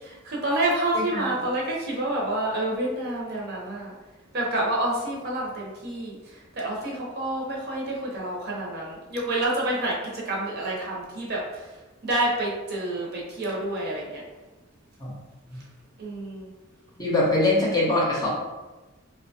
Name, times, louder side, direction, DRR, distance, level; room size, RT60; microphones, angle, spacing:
voice 1, 0.0-3.9 4.3-11.7 12.0-14.2 16.0-16.5, right 1 dB, 55° right, -3 dB, 0.7 m, -28 dB
voice 2, 0.9-1.3 15.0-15.1 17.0-18.3, left 2 dB, 20° left, -5 dB, 0.6 m, -23 dB
2.8 x 2.2 x 2.7 m, 1.2 s
head